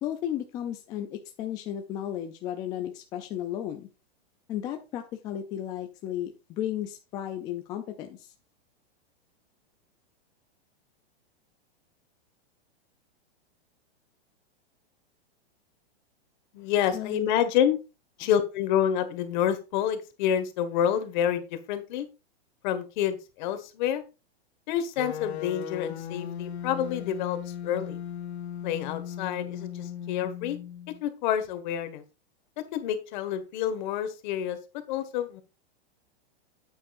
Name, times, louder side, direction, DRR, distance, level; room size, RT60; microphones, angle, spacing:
voice 1, 0.0-3.9 4.5-8.3 16.9-17.3, left 11 dB, 15° left, 5 dB, 0.3 m, -34 dB
voice 2, 16.5-17.8 18.2-22.1 22.6-24.0 24.7-27.4 27.6-28.0 28.6-30.6 31.0-32.0 32.7-34.6 34.9-35.4, left 9 dB, 45° left, 10 dB, 1.6 m, -28 dB
sound 1, 25.0-31.0, left 9 dB, 85° left, 1.4 m, -37 dB
9.3 x 8.7 x 2.5 m, 0.29 s
supercardioid pair, 155°, 32 cm